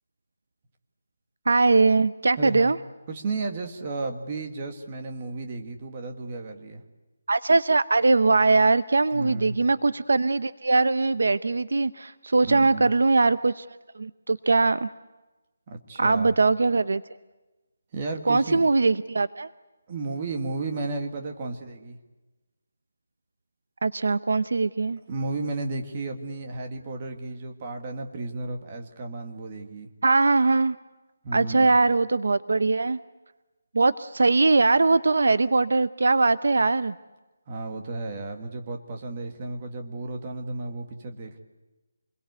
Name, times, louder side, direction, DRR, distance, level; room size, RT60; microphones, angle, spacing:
voice 1, 1.5-2.8 7.3-13.7 14.0-14.9 16.0-17.0 18.3-19.5 23.8-25.0 30.0-30.8 31.3-33.0 33.7-36.9, right 3 dB, 65° right, 15 dB, 0.8 m, -21 dB
voice 2, 2.4-2.7 3.1-6.8 9.1-9.6 12.4-12.9 15.7-16.3 17.9-18.6 19.9-22.0 25.1-29.9 31.2-31.8 37.5-41.4, right 3 dB, 20° right, 4 dB, 1.8 m, -33 dB
27.5 x 22.0 x 8.1 m, 1.1 s
hypercardioid pair, 180°, 0 cm